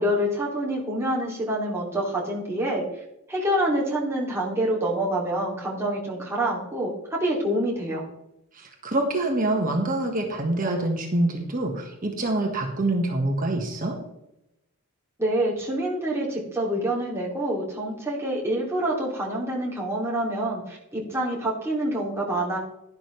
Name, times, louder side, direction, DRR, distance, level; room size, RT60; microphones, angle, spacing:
voice 1, 0.0-2.8 3.3-8.1 15.2-22.6, right 1 dB, 10° right, -4 dB, 2.8 m, -26 dB
voice 2, 8.5-13.9, right 2 dB, 40° right, 1 dB, 1.7 m, -25 dB
11.5 x 11.0 x 3.3 m, 0.84 s
head